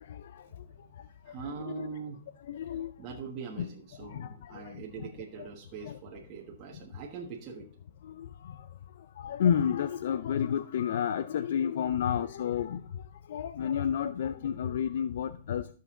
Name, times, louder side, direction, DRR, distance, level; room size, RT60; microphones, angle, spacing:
voice 1, 0.1-0.4 1.6-1.9 2.4-2.9 3.6-3.7 4.0-5.1 5.4-5.5 5.8-6.0 8.0-8.7 9.2-12.8 13.3-15.7, left 8 dB, 65° left, 0.5 m, -31 dB
voice 2, 1.2-2.2 3.0-7.7, right 5 dB, 30° right, 1.5 m, -42 dB
13.0 x 6.6 x 3.8 m
hypercardioid pair, 145°, 0 cm